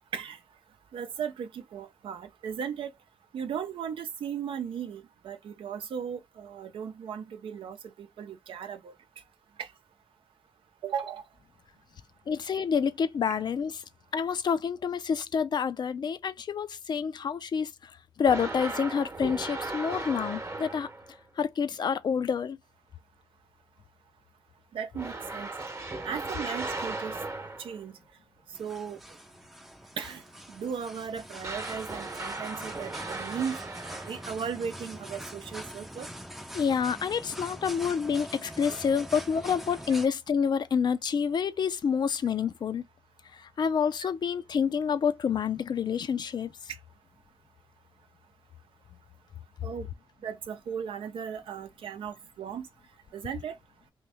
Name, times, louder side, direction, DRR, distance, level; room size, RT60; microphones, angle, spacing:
voice 1, 0.9-2.9 3.3-8.9 9.6-9.7 10.8-11.2 13.3-13.4 24.7-25.5 26.0-27.2 27.6-28.0 28.6-29.0 30.0-30.2 30.5-33.6 34.1-36.1 38.7-38.8 49.6-49.9 50.2-52.7 53.1-53.6, right 7 dB, 80° right, 0.6 m, -36 dB
voice 2, 12.3-13.7 14.1-17.9 18.2-20.9 21.4-22.6 36.5-42.8 43.3-46.5, left 6 dB, 55° left, 0.4 m, -28 dB
sound 1, 18.2-21.2 25.0-27.9 31.4-34.5, right 2 dB, 30° right, 0.9 m, -37 dB
sound 2, 28.5-40.1, equal, 5° right, 0.5 m, -43 dB
3.0 x 2.6 x 3.4 m
cardioid pair, 80°, 9 cm